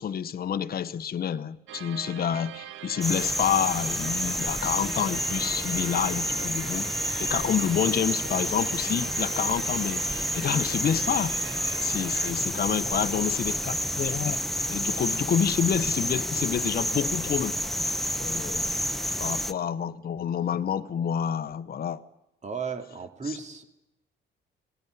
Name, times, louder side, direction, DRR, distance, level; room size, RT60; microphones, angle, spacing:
voice 1, 0.0-6.9 7.2-14.4 14.7-17.5 18.2-18.7 19.2-22.0, left 8 dB, 50° left, 1.0 m, -28 dB
sound 1, 1.7-12.3, right 12 dB, 75° right, 0.7 m, -42 dB
sound 2, 3.0-19.5, equal, ahead, 1.0 m, -29 dB
voice 2, 22.4-23.6, right 5 dB, 35° right, 2.5 m, -35 dB
19.5 x 16.5 x 9.4 m
cardioid pair, 90°, 20 cm